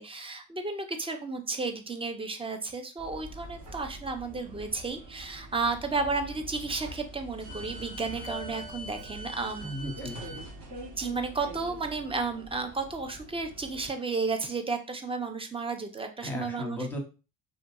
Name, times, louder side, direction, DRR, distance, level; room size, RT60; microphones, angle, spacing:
voice 1, 0.0-9.7 10.9-16.8, right 4 dB, 15° right, 6 dB, 0.4 m, -33 dB
sound 1, 3.0-13.9, equal, 40° right, 0.9 m, -43 dB
voice 2, 9.6-10.4 16.2-17.0, equal, 5° left, 1 dB, 0.9 m, -36 dB
2.7 x 2.6 x 2.3 m, 0.32 s
supercardioid pair, 70°, 46 cm